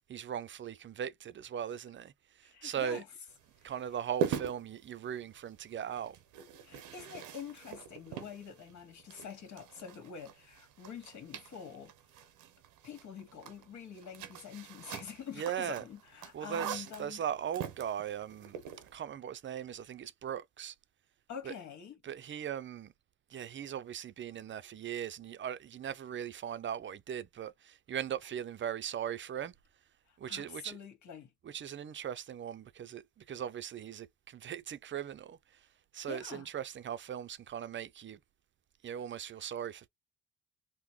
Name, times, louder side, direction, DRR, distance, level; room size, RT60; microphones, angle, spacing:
voice 1, 0.1-2.1 2.6-3.0 3.6-6.2 15.4-15.8 16.3-18.6 18.9-20.7 21.4-21.5 22.0-22.9 23.3-29.5 30.2-30.8 31.4-35.4 35.9-38.2 38.8-39.9, right 9 dB, 40° right, 0.5 m, -39 dB
voice 2, 2.4-3.1 3.6-3.8 6.6-11.9 12.2-12.3 12.8-17.2 21.3-22.0 30.1-31.3 36.0-36.5, left 7 dB, 70° left, 1.7 m, -46 dB
sound 1, 3.3-18.9, right 8 dB, 90° right, 0.8 m, -43 dB
3.8 x 2.1 x 3.0 m
cardioid pair, 90°, 30 cm